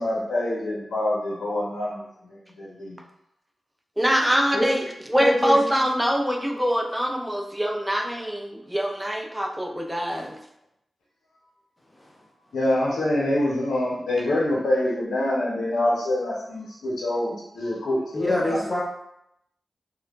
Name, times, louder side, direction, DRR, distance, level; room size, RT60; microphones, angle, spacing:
voice 1, 0.0-3.0 12.5-18.6, left 1 dB, 90° left, -4 dB, 0.6 m, -26 dB
voice 2, 4.0-10.4, equal, 10° right, 3 dB, 0.4 m, -24 dB
voice 3, 5.2-5.6 10.2-10.3 18.1-18.8, left 1 dB, 25° left, -3 dB, 0.8 m, -24 dB
3.1 x 2.1 x 2.3 m, 0.78 s
cardioid pair, 45°, 0 cm